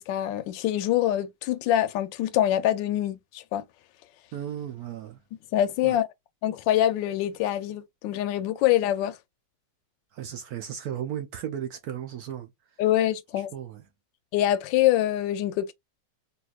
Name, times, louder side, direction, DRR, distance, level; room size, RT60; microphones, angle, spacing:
voice 1, 0.0-3.6 5.5-6.1 6.4-9.2 12.8-13.5 14.3-15.7, left 12 dB, 80° left, 1.2 m, -25 dB
voice 2, 4.3-5.2 5.8-6.0 10.1-12.5 13.5-13.9, right 10 dB, 70° right, 0.9 m, -35 dB
4.0 x 2.5 x 2.3 m
omnidirectional pair, 2.0 m